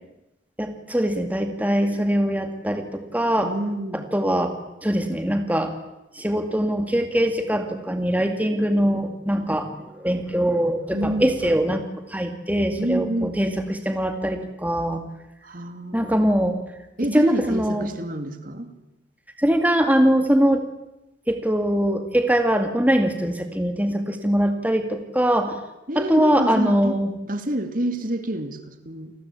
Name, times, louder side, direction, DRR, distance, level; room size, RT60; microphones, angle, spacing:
voice 1, 0.6-3.5 3.9-4.5 4.8-5.7 6.1-11.8 12.1-15.0 15.9-16.6 17.1-17.9 19.4-20.6 21.3-25.6 26.0-27.1, equal, 10° right, 6 dB, 2.2 m, -22 dB
voice 2, 3.4-4.1 10.9-11.3 12.8-13.4 15.4-16.5 17.0-18.7 25.9-27.0 27.3-29.1, right 1 dB, 45° right, 8 dB, 2.4 m, -28 dB
29.5 x 20.5 x 8.4 m, 0.94 s
head